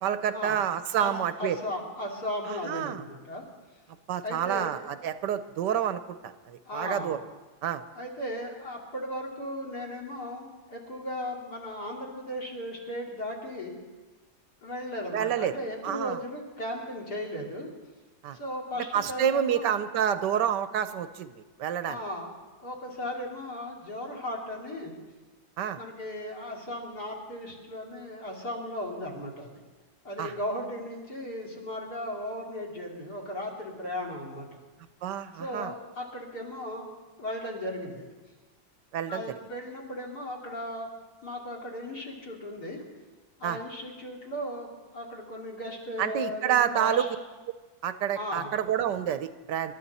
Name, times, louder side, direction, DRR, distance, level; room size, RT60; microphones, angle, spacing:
voice 1, 0.0-1.6 2.5-3.0 4.1-7.2 7.6-7.8 15.1-15.5 15.8-16.2 18.2-18.4 18.9-22.0 25.6-25.8 30.2-30.3 35.0-35.7 38.9-39.2 43.4-43.6 46.0-47.1 47.8-49.7, right 9 dB, 70° right, 11 dB, 1.2 m, -28 dB
voice 2, 1.4-3.4 4.2-4.7 6.6-7.1 7.9-13.7 14.6-17.7 18.3-19.7 21.8-22.3 22.6-25.0 25.7-29.5 30.0-34.6 35.4-36.9 37.2-38.0 39.1-40.9 41.2-42.8 43.4-47.1 48.1-48.5, left 1 dB, 55° left, 1 dB, 3.4 m, -36 dB
27.0 x 12.5 x 4.1 m, 1.3 s
omnidirectional pair, 2.1 m